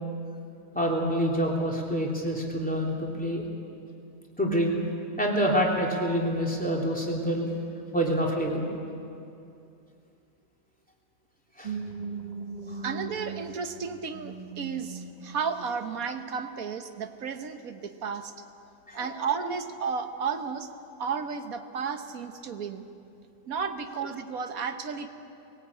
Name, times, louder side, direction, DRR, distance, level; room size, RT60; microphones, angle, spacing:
voice 1, 0.7-3.4 4.4-4.8 5.2-7.5 7.9-8.7 11.6-11.7 18.9-19.1, equal, 5° left, -2 dB, 3.0 m, -27 dB
sound 1, 11.6-15.6 16.1-16.4, right 4 dB, 30° right, 1.0 m, -39 dB
voice 2, 12.8-18.3 18.9-20.7 21.0-22.8 23.5-25.1, right 6 dB, 85° right, 8 dB, 1.6 m, -33 dB
21.0 x 18.0 x 8.5 m, 2.6 s
omnidirectional pair, 1.4 m